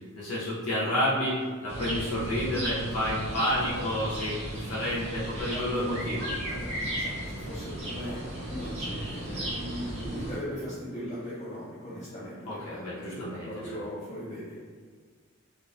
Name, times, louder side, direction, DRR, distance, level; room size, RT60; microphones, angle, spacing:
voice 1, 0.1-6.3 12.5-13.5, left 1 dB, 85° left, -7 dB, 0.5 m, -30 dB
sound 1, 1.7-10.4, right 1 dB, 30° right, 0.5 m, -35 dB
voice 2, 5.5-6.0 6.5-8.2 8.5-14.6, equal, 30° left, -12 dB, 0.5 m, -39 dB
2.4 x 2.1 x 2.4 m, 1.6 s
head